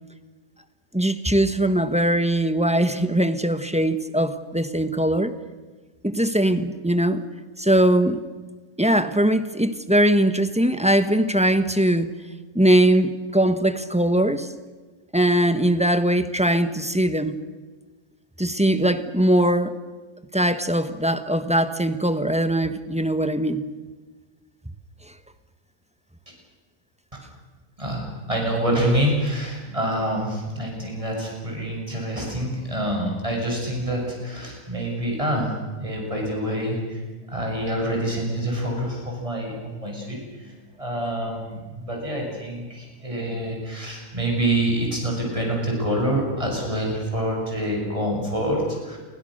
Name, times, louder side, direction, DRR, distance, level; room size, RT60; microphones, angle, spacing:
voice 1, 0.9-5.3 6.0-7.2 7.6-8.2 8.8-12.1 12.5-14.5 15.1-17.4 18.4-19.7 20.3-23.7, right 1 dB, 5° right, 10 dB, 1.1 m, -21 dB
voice 2, 27.8-35.5 35.8-37.0 37.3-49.0, right 1 dB, 25° right, -1 dB, 7.8 m, -26 dB
29.5 x 24.0 x 6.7 m, 1.3 s
omnidirectional pair, 1.4 m